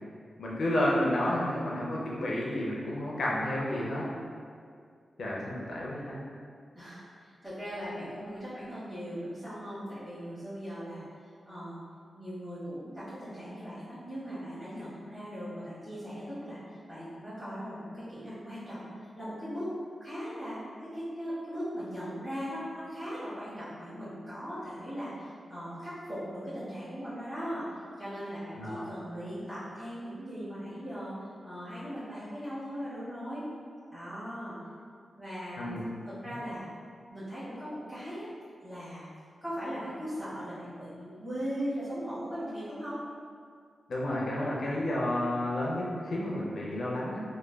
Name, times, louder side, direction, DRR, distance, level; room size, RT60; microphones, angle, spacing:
voice 1, 0.4-4.0 5.2-6.2 28.6-28.8 35.6-35.9 36.3-36.4 43.9-47.2, left 1 dB, 70° left, -5 dB, 0.5 m, -31 dB
voice 2, 6.7-11.0 11.4-11.8 12.1-16.6 16.9-19.7 20.0-27.6 28.0-33.5 33.9-34.6 35.2-35.7 36.2-36.6 37.1-38.3 38.6-39.1 39.4-43.0, equal, 10° right, -17 dB, 1.3 m, -39 dB
3.1 x 2.1 x 2.2 m, 2.2 s
wide cardioid pair, 130°, 0 cm